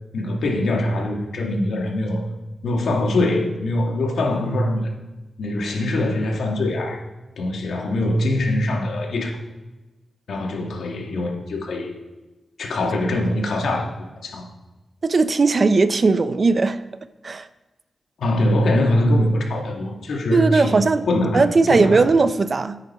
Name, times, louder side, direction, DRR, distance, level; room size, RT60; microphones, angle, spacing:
voice 1, 0.1-2.3 2.6-4.9 5.4-7.0 7.4-9.4 10.3-12.0 12.6-14.5 18.2-22.0, left 1 dB, 85° left, 2.0 m, -23 dB
voice 2, 15.0-16.8 17.2-17.5 20.3-21.1 21.3-22.8, right 3 dB, 50° right, 0.6 m, -18 dB
9.5 x 9.2 x 4.3 m
cardioid pair, 65°, 0 cm